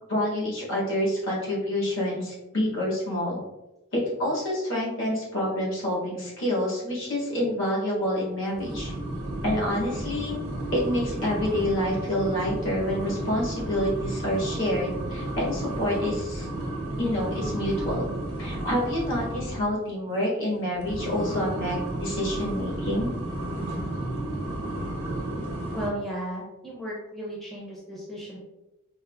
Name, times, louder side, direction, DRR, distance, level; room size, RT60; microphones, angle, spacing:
voice 1, 0.1-3.4 3.9-8.9 9.4-10.4 10.7-16.5 17.0-18.1 18.4-23.2, left 1 dB, 60° left, -6 dB, 1.3 m, -27 dB
sound 1, 8.5-19.7 20.7-25.9, right 1 dB, 90° right, 0.8 m, -32 dB
voice 2, 25.7-28.4, equal, ahead, -6 dB, 0.5 m, -35 dB
4.6 x 2.0 x 2.2 m, 0.99 s
head